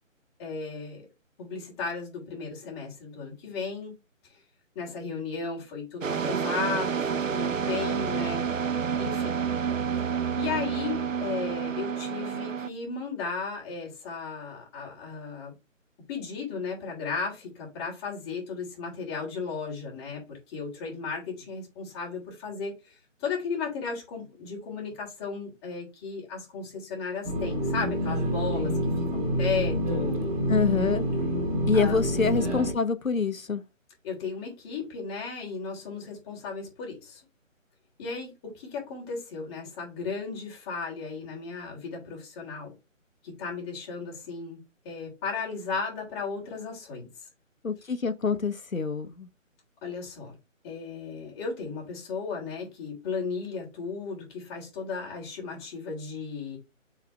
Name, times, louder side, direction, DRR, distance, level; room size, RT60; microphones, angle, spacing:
voice 1, 0.4-1.0 1.4-3.9 4.8-8.5 9.0-9.4 10.4-15.5 16.1-22.9 23.2-30.2 31.7-32.0 34.0-37.2 38.0-42.7 43.2-44.6 44.8-47.1 49.8-50.4 50.6-56.6, left 5 dB, 20° left, 3.4 m, -35 dB
sound 1, 6.0-12.7, right 7 dB, 75° right, 0.8 m, -29 dB
sound 2, 27.2-32.7, equal, 30° right, 2.4 m, -27 dB
voice 2, 30.5-31.0 31.7-33.6 47.6-49.3, left 5 dB, 85° left, 1.4 m, -26 dB
6.8 x 4.9 x 3.4 m
figure-of-eight pair, 155°, 39 cm